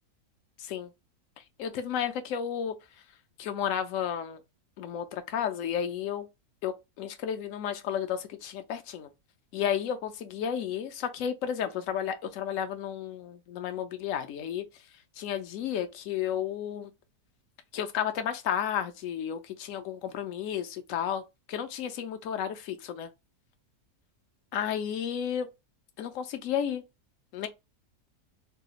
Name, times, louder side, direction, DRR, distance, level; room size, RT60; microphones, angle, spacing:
voice 1, 0.6-0.9 1.6-2.7 3.4-4.4 4.8-6.3 6.6-9.1 9.5-14.6 15.2-16.9 17.7-21.2 21.5-23.1 24.5-25.5 26.0-26.8 27.3-27.5, left 9 dB, 65° left, 0.9 m, -32 dB
3.4 x 2.3 x 2.9 m
omnidirectional pair, 1.6 m